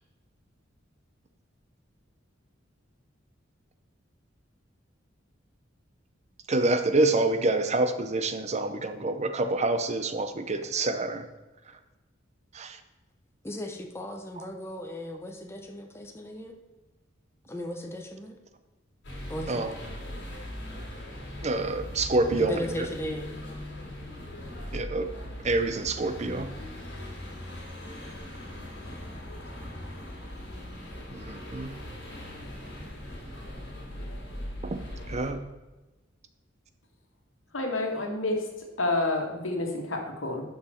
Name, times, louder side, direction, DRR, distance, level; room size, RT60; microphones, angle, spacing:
voice 1, 6.5-11.2 12.5-12.8 14.4-14.5 19.5-19.7 21.4-22.9 24.7-25.1 25.4-26.5 31.1-31.7 34.6-34.8 35.1-35.4, right 2 dB, 35° right, 9 dB, 0.7 m, -27 dB
voice 2, 13.4-16.6 17.5-18.4 19.3-19.7 22.3-23.4 28.8-29.6, equal, 15° left, 3 dB, 0.9 m, -37 dB
sound 1, 19.0-35.3, left 1 dB, 60° left, 3.1 m, -40 dB
voice 3, 37.5-38.4 38.8-40.4, left 2 dB, 85° left, 2 dB, 1.8 m, -29 dB
11.0 x 5.9 x 4.4 m, 1.1 s
head